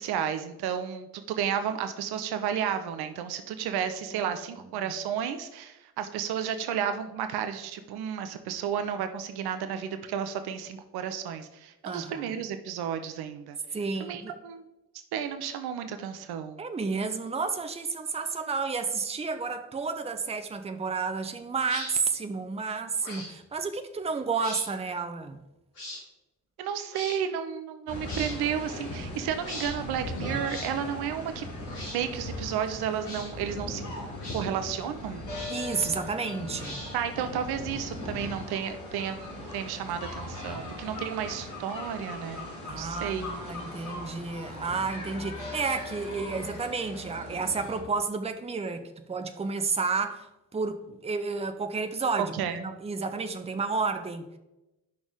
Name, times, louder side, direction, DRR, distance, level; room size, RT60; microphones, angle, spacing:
voice 1, 0.0-13.6 14.0-14.6 15.1-16.6 26.6-31.5 31.9-33.8 34.3-35.3 36.9-42.5 42.8-43.3 52.2-52.6, right 8 dB, 55° right, 0.8 m, -32 dB
voice 2, 11.9-12.4 13.7-14.3 16.6-25.4 35.5-36.8 42.6-50.3 50.5-52.3 52.6-54.4, right 4 dB, 15° right, 0.7 m, -31 dB
sound 1, 21.6-21.9 23.0-23.3 24.3-24.6 25.7-26.0 26.9-27.2 28.0-28.4 29.4-29.7 30.4-30.7 31.6-32.0 33.0-33.3 34.2-34.4 35.3-35.7 36.6-37.1, left 1 dB, 75° left, 2.6 m, -40 dB
sound 2, 27.9-47.8, left 1 dB, 40° left, 3.2 m, -39 dB
9.7 x 6.0 x 3.8 m
figure-of-eight pair, 40°, 46 cm